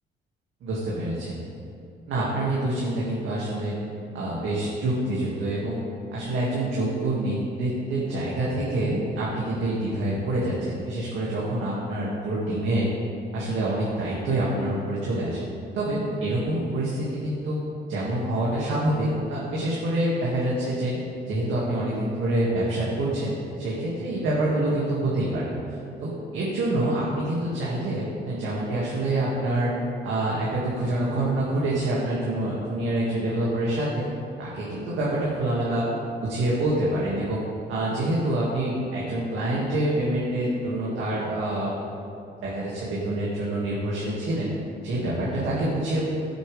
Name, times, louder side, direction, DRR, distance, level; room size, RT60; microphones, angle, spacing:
voice 1, 0.6-1.4 2.1-3.8 4.1-5.8 6.1-12.9 13.3-15.4 15.7-17.6 17.9-20.9 21.2-25.5 26.0-29.7 30.0-34.1 34.4-35.9 36.2-37.4 37.7-41.7 42.4-44.5 44.8-46.0, right 1 dB, 80° right, -7 dB, 2.2 m, -26 dB
16.5 x 7.7 x 3.5 m, 2.6 s
cardioid pair, 90°, 20 cm